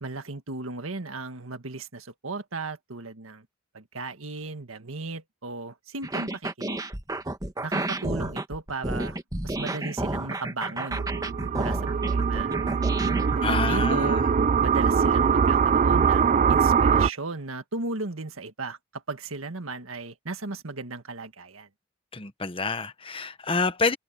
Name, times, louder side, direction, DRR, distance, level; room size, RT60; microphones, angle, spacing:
voice 1, 0.0-3.4 3.7-6.8 7.6-9.2 9.4-11.0 11.6-12.5 13.3-14.2 14.6-21.7, right 3 dB, 85° right, 1.7 m, -36 dB
sound 1, 6.0-13.4, right 1 dB, 20° right, 1.3 m, -31 dB
sound 2, 10.9-17.1, right 6 dB, 35° right, 0.3 m, -22 dB
voice 2, 13.4-14.3 22.1-24.0, left 4 dB, 25° left, 1.1 m, -28 dB
head